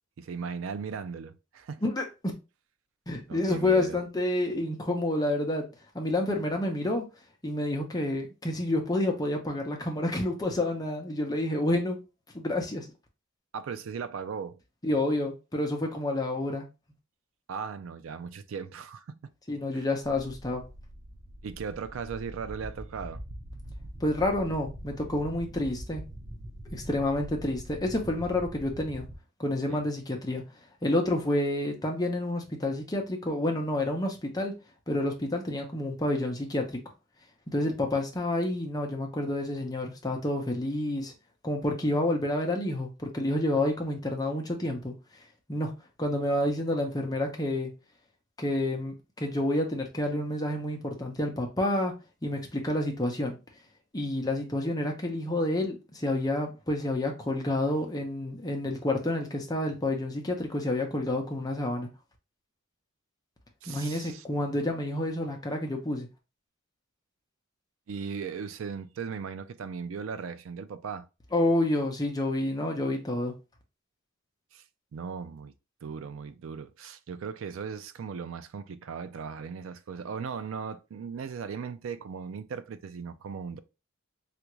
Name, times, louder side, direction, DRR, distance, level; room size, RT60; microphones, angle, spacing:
voice 1, 0.2-1.8 3.3-4.0 13.5-14.6 17.5-19.3 19.7-19.8 21.4-23.2 29.7-29.9 63.6-64.2 67.9-71.1 74.5-74.6 74.9-75.5 75.8-83.6, right 6 dB, 85° right, 0.4 m, -37 dB
voice 2, 3.1-5.7 5.9-7.0 7.4-12.0 12.3-12.9 14.8-16.7 19.5-20.6 24.0-26.0 26.7-29.1 29.4-30.4 30.8-34.5 34.9-36.8 37.5-41.1 41.4-44.9 45.5-45.7 46.0-47.7 48.4-51.9 52.2-53.4 53.9-61.9 63.7-66.1 71.3-73.3, left 1 dB, 20° left, 0.7 m, -29 dB
sound 1, 20.0-29.1, right 1 dB, 45° right, 0.6 m, -43 dB
3.4 x 2.5 x 3.0 m
head